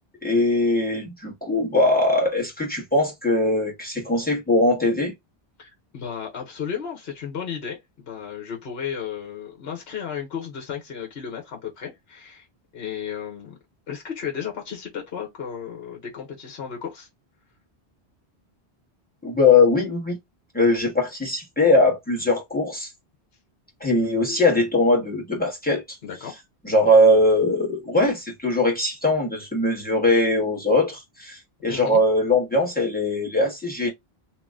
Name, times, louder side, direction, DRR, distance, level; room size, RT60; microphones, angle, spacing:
voice 1, 0.2-5.1 19.2-20.2 20.5-22.9 23.8-25.8 26.6-33.9, left 2 dB, 10° left, 1.4 m, -21 dB
voice 2, 5.6-12.5 12.7-13.6 13.9-17.1 26.0-26.4 31.7-32.0, left 7 dB, 70° left, 1.3 m, -34 dB
2.9 x 2.6 x 3.6 m
omnidirectional pair, 1.1 m